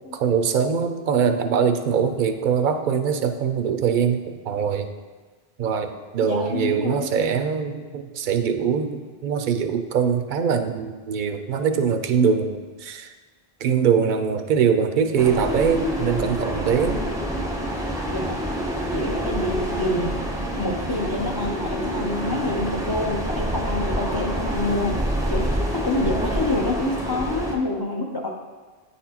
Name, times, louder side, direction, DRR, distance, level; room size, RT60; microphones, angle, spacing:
voice 1, 0.1-4.9 5.6-13.1 13.6-17.0, right 7 dB, 60° right, 7 dB, 0.6 m, -22 dB
voice 2, 6.2-7.1 16.9-17.1 18.0-20.2 20.6-25.0 25.3-28.3, left 2 dB, 30° left, -1 dB, 0.4 m, -27 dB
sound 1, 15.2-27.5, equal, 5° right, 0.7 m, -27 dB
9.6 x 4.2 x 2.9 m, 1.4 s
omnidirectional pair, 1.0 m